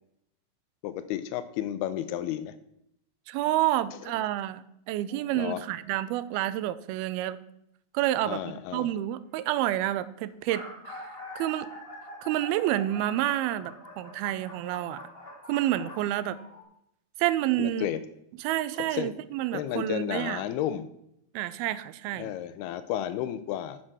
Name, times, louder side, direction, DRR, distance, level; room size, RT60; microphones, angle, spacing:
voice 1, 0.8-2.5 4.2-4.3 5.3-5.6 8.3-8.9 17.6-18.0 18.9-19.1 19.5-20.9 22.2-23.8, left 11 dB, 85° left, 13 dB, 2.5 m, -32 dB
voice 2, 3.3-7.4 7.9-11.1 11.4-11.7 12.2-15.0 15.5-16.4 17.2-17.9 18.4-20.4 21.3-22.3, right 14 dB, 85° right, 15 dB, 2.4 m, -29 dB
sound 1, 8.7-8.8 9.5-9.6 9.8-9.9 10.3-16.6, left 1 dB, 40° left, 0.8 m, -44 dB
9.7 x 7.6 x 6.1 m, 0.77 s
omnidirectional pair, 4.6 m